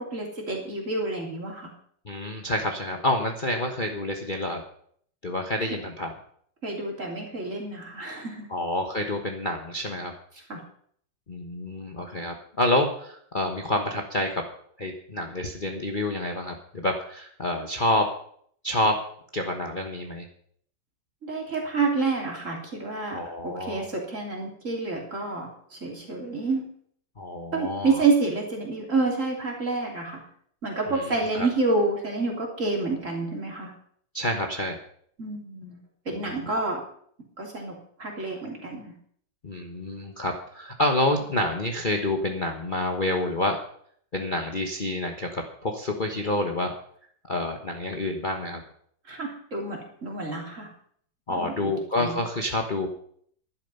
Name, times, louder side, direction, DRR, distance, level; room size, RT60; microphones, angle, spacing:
voice 1, 0.1-1.7 5.7-5.8 6.6-8.5 10.5-10.6 21.2-25.5 25.8-26.6 27.5-30.2 30.6-33.7 35.2-35.7 36.1-36.8 37.4-37.7 38.0-38.9 49.1-50.7 51.3-51.7 52.0-52.2, right 3 dB, 40° right, 0 dB, 3.3 m, -28 dB
voice 2, 2.1-4.6 5.2-6.1 8.5-10.1 11.3-14.4 14.8-18.1 18.6-19.0 19.3-20.3 23.1-23.9 27.2-28.0 30.9-31.5 34.1-34.8 36.1-36.5 39.4-43.6 44.1-46.7 47.3-48.6 51.3-52.9, left 1 dB, 30° left, 3 dB, 1.2 m, -28 dB
11.5 x 11.5 x 5.5 m, 0.62 s
omnidirectional pair, 2.1 m